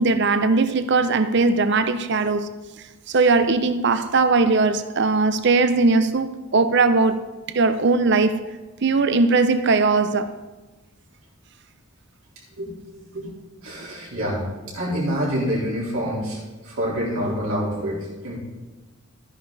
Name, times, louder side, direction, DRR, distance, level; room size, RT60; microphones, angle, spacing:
voice 1, 0.0-2.5 3.1-7.2 7.5-8.4 8.8-10.3, right 3 dB, 55° right, 0.6 m, -19 dB
voice 2, 13.6-14.5 14.7-18.4, equal, 75° right, 4.1 m, -27 dB
12.5 x 10.0 x 4.1 m
head